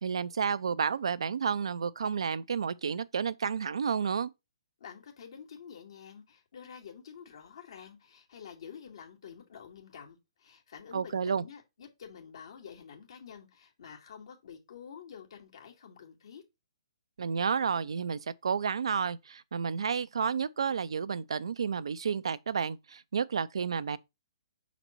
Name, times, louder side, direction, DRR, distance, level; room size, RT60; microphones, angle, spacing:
voice 1, 0.0-4.3 10.9-11.4 17.2-24.0, right 6 dB, 75° right, 0.5 m, -31 dB
voice 2, 4.8-16.4, left 7 dB, 65° left, 2.1 m, -49 dB
5.9 x 4.1 x 4.4 m
hypercardioid pair, 140°, 3 cm